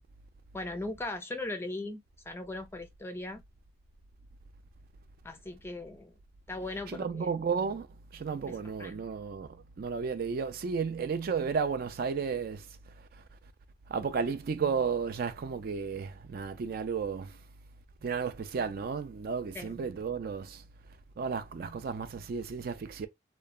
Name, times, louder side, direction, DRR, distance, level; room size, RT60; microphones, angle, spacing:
voice 1, 0.5-3.4 5.2-6.1 6.5-7.3 8.5-9.0 19.5-19.8, left 2 dB, 15° left, 0.4 m, -39 dB
voice 2, 6.9-7.9 8.1-12.6 13.9-17.3 18.0-20.6 21.2-23.1, right 5 dB, 55° right, 0.4 m, -33 dB
3.0 x 2.1 x 2.3 m
head